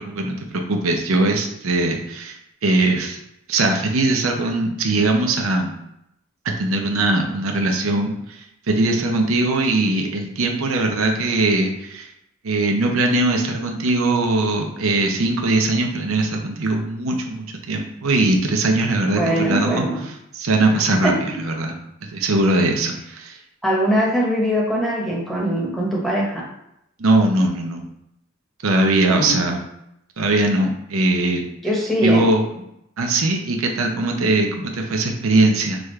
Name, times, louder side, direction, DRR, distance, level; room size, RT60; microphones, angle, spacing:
voice 1, 0.0-2.4 2.6-3.2 3.5-5.7 6.6-12.1 12.4-21.7 22.1-23.4 27.0-27.8 28.6-29.6 30.2-31.5 32.0-32.4 33.0-35.8, right 2 dB, 80° right, 2 dB, 0.6 m, -20 dB
voice 2, 19.1-20.0 21.0-21.1 23.6-26.4 29.1-29.4 31.6-32.3, equal, ahead, -4 dB, 1.0 m, -21 dB
6.2 x 2.4 x 3.2 m, 0.80 s
head